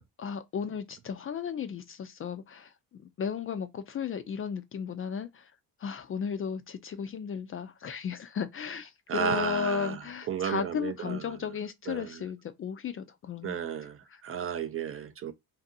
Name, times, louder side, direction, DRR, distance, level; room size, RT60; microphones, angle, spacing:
voice 1, 0.2-5.5 5.8-13.6 14.1-14.2, left 7 dB, 35° left, 0.4 m, -35 dB
voice 2, 9.1-10.0 10.3-11.2 11.9-12.1 13.4-15.3, right 8 dB, 35° right, 0.4 m, -33 dB
2.7 x 2.5 x 2.4 m
supercardioid pair, 80°, 40 cm